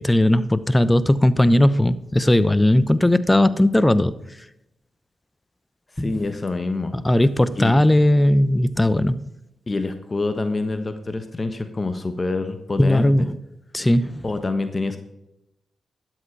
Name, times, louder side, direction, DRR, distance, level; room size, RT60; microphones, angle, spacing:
voice 1, 0.0-4.1 6.0-6.1 6.9-9.2 12.8-13.3 13.7-14.2, left 1 dB, 15° left, 15 dB, 0.9 m, -18 dB
voice 2, 5.9-6.9 7.6-7.7 9.7-13.0 14.2-15.0, left 3 dB, 35° left, 8 dB, 1.3 m, -26 dB
12.5 x 8.0 x 4.7 m, 0.87 s
supercardioid pair, 45°, 0 cm